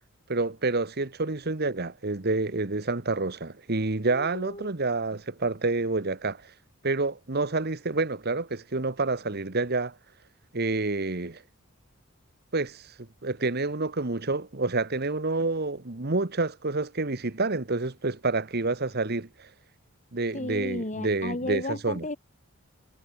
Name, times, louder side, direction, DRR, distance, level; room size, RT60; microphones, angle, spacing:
voice 1, 0.3-6.5 6.8-9.9 10.5-11.4 12.5-12.9 13.2-19.5 20.1-22.1, right 3 dB, 50° right, 1.3 m, -28 dB
voice 2, 4.0-4.7 20.3-22.2, left 2 dB, 35° left, 2.2 m, -34 dB
head